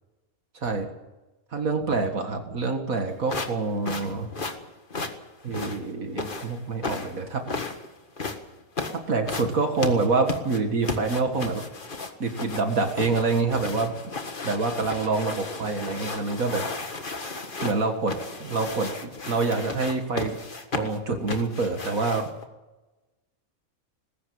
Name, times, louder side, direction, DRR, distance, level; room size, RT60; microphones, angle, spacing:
voice 1, 0.5-0.9 1.5-4.3 5.4-7.5 8.9-11.6 12.2-14.0 14.4-16.7 17.6-20.4 20.7-22.3, right 3 dB, 70° right, 5 dB, 2.2 m, -26 dB
sound 1, 3.3-22.4, left 3 dB, 35° left, 1.8 m, -34 dB
20.0 x 16.0 x 8.6 m, 1.1 s
omnidirectional pair, 1.5 m